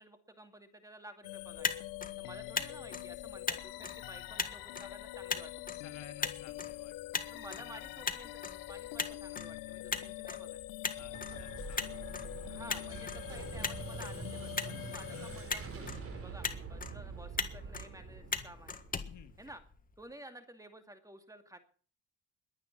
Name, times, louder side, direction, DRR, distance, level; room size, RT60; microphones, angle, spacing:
voice 1, 0.0-1.8 2.2-5.5 7.3-10.6 12.5-18.8 19.4-19.6 20.0-21.6, right 1 dB, 10° right, 7 dB, 2.5 m, -52 dB
sound 1, 1.2-16.0, left 19 dB, 90° left, 0.8 m, -45 dB
Motor vehicle (road), 1.4-20.0, left 4 dB, 25° left, 1.7 m, -41 dB
voice 2, 5.7-7.4 10.9-12.0 15.1-15.3 19.1-19.4, left 9 dB, 60° left, 8 dB, 2.1 m, -55 dB
Explosion, 11.0-19.6, right 5 dB, 45° right, 4.6 m, -45 dB
21.5 x 8.9 x 6.1 m, 0.42 s
cardioid pair, 105°, 33 cm